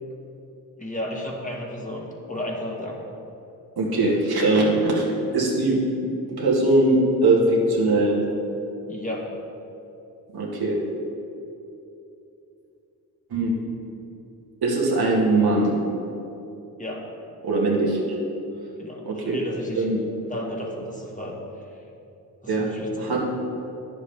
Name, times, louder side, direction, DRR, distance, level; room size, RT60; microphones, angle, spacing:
voice 1, 0.8-3.0 8.9-9.3 16.8-17.1 18.8-19.9 20.3-21.4 22.4-23.2, left 1 dB, 20° left, -3 dB, 1.7 m, -33 dB
voice 2, 3.8-5.0 5.3-8.2 10.3-10.8 13.3-13.5 14.6-15.7 17.4-18.0 19.0-19.4 19.8-20.0 22.5-22.7 23.0-23.2, right 2 dB, 65° right, -3 dB, 1.9 m, -21 dB
9.9 x 7.3 x 3.4 m, 2.8 s
cardioid pair, 55°, 40 cm